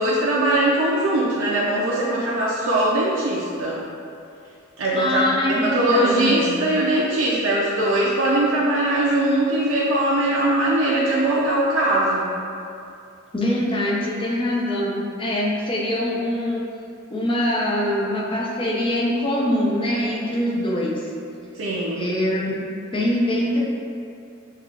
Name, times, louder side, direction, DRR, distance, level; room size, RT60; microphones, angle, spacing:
voice 1, 0.0-3.8 4.8-5.2 5.5-12.3 21.6-22.1, right 1 dB, 90° right, -7 dB, 0.5 m, -21 dB
voice 2, 4.9-6.6 13.3-16.6 17.1-21.1 21.9-23.6, left 1 dB, 25° left, -4 dB, 0.6 m, -23 dB
6.4 x 2.4 x 2.4 m, 2.6 s
head